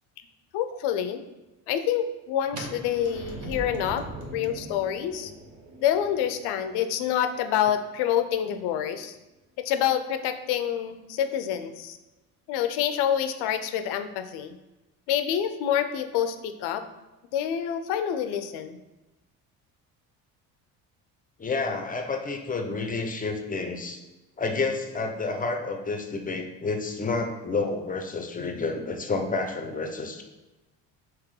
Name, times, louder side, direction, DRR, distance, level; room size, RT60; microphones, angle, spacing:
voice 1, 0.5-1.2 1.7-4.1 4.3-5.3 5.8-9.2 9.6-12.0 12.5-14.6 15.1-16.9 17.3-18.8, left 9 dB, 75° left, 9 dB, 0.6 m, -27 dB
sound 1, 2.5-8.3, right 2 dB, 45° right, 1.0 m, -41 dB
voice 2, 21.4-24.0 24.4-30.2, left 3 dB, 20° left, 5 dB, 0.6 m, -30 dB
3.6 x 3.1 x 4.8 m, 1.0 s
supercardioid pair, 90°, 40 cm